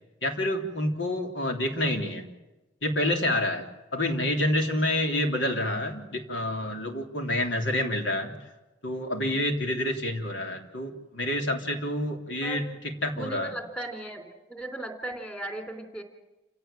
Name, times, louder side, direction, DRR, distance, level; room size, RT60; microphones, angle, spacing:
voice 1, 0.2-2.2 2.8-3.6 3.9-8.3 8.8-13.5, left 1 dB, 70° left, 4 dB, 3.5 m, -28 dB
voice 2, 13.1-16.0, right 1 dB, 10° left, 7 dB, 3.6 m, -37 dB
28.5 x 17.5 x 9.1 m, 1.0 s
head